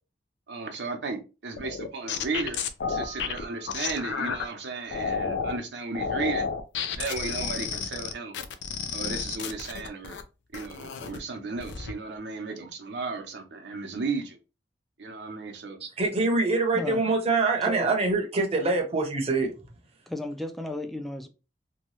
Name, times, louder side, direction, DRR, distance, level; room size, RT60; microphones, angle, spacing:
voice 1, 0.5-2.6 2.9-6.5 6.9-8.3 8.9-10.2 10.5-14.4 15.0-15.8, right 4 dB, 80° right, 0.7 m, -34 dB
sound 1, 1.6-4.4 4.9-5.6 5.9-10.2 10.5-11.2 11.6-11.9, left 6 dB, 80° left, 0.4 m, -31 dB
Keyboard (musical), 2.8-4.6, equal, 55° left, 1.2 m, -46 dB
voice 2, 16.0-19.5, right 3 dB, 35° right, 0.7 m, -24 dB
voice 3, 16.7-17.1 17.6-17.9 20.1-21.3, left 1 dB, ahead, 0.3 m, -34 dB
2.8 x 2.2 x 3.0 m
head